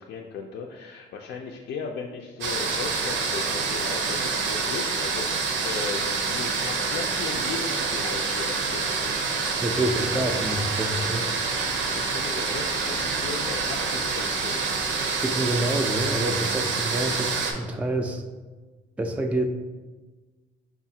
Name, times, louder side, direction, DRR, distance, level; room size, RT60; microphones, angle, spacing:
voice 1, 0.0-9.0 9.3-10.4 12.0-14.6, left 5 dB, 65° left, 0 dB, 0.4 m, -37 dB
sound 1, 2.4-17.5, right 4 dB, 80° right, 0.6 m, -27 dB
voice 2, 9.6-11.3 15.1-18.2 19.0-19.5, right 1 dB, 5° right, 4 dB, 0.3 m, -27 dB
5.0 x 2.4 x 2.7 m, 1.3 s
cardioid pair, 90°, 20 cm